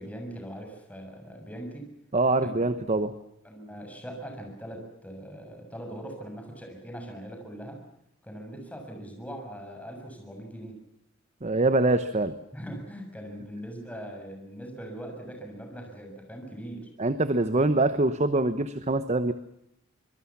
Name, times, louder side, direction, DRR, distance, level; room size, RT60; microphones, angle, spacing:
voice 1, 0.0-1.9 2.4-2.6 3.0-3.1 3.4-7.8 8.2-10.8 12.5-16.9, equal, 5° left, 3 dB, 6.9 m, -41 dB
voice 2, 2.1-3.1 11.4-12.3 17.0-19.3, right 2 dB, 35° right, 11 dB, 1.0 m, -24 dB
26.0 x 22.5 x 7.3 m, 0.77 s
head